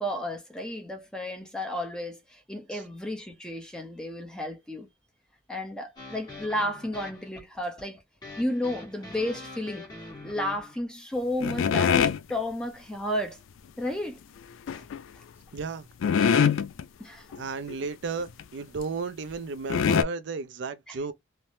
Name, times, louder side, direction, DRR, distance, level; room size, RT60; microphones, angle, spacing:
voice 1, 0.0-4.9 5.5-8.0 8.4-9.9 10.2-13.4 13.8-14.2 14.7-14.9 17.0-17.3 20.9-21.0, left 1 dB, 5° left, 0.7 m, -32 dB
sound 1, 6.0-10.8, left 2 dB, 20° left, 1.2 m, -44 dB
sound 2, 11.4-12.2 14.7-15.0 15.6-15.7 16.0-16.8 17.3-17.4 17.7-17.8 18.4-18.5 19.3-19.4 19.7-20.0, left 7 dB, 90° left, 0.3 m, -23 dB
voice 2, 15.5-15.9 17.4-21.1, right 4 dB, 65° right, 0.4 m, -34 dB
3.2 x 2.1 x 2.6 m
head